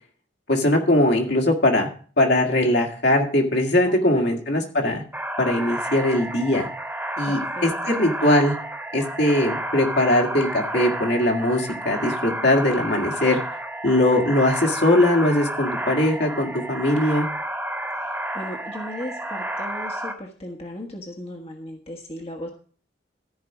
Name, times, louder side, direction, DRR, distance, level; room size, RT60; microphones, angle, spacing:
voice 1, 0.5-1.9 2.2-5.0 5.4-6.7 7.2-8.6 8.9-13.4 13.8-17.3, left 1 dB, 60° left, 1 dB, 2.1 m, -20 dB
voice 2, 3.8-4.3 7.2-7.9 18.0-22.5, left 1 dB, 30° left, 1 dB, 1.3 m, -37 dB
sound 1, 5.1-20.1, right 1 dB, 10° right, 1.5 m, -31 dB
14.0 x 5.1 x 6.0 m, 0.43 s
head